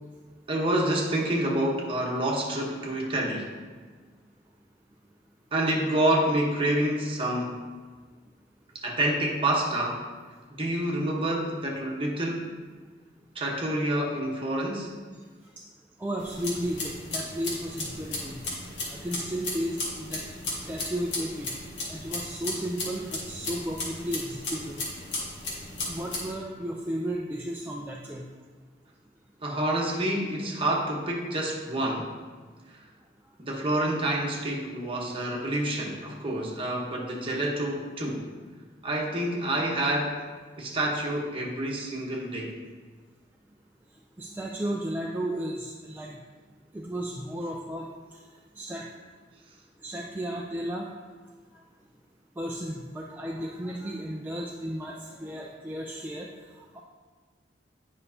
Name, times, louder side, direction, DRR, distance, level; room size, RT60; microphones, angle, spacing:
voice 1, 0.5-3.5 5.5-7.6 8.8-10.0 10.5-12.5 13.3-14.9 29.4-32.1 32.7-32.8 33.4-38.2 38.8-40.1 40.6-42.5, right 1 dB, 30° right, -2 dB, 1.2 m, -28 dB
voice 2, 16.0-18.4 18.9-20.2 20.6-21.5 21.9-24.8 25.9-28.3 44.2-46.2 46.7-47.9 48.6-48.8 49.8-50.9 52.4-56.3 56.7-56.8, right 1 dB, 10° right, -3 dB, 0.4 m, -34 dB
sound 1, 16.2-26.3, left 2 dB, 90° left, 1.6 m, -35 dB
9.0 x 5.4 x 2.8 m, 1.4 s
head